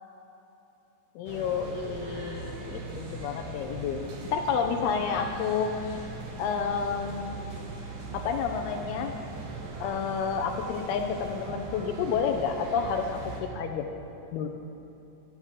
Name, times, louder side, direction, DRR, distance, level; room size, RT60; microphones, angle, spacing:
voice 1, 1.2-6.0 6.4-7.4 8.1-9.2 9.8-13.9 14.3-14.5, left 6 dB, 85° left, 4 dB, 2.3 m, -30 dB
sound 1, 1.3-13.4, right 3 dB, 65° right, 3.3 m, -40 dB
11.0 x 10.5 x 7.4 m, 3.0 s
omnidirectional pair, 5.3 m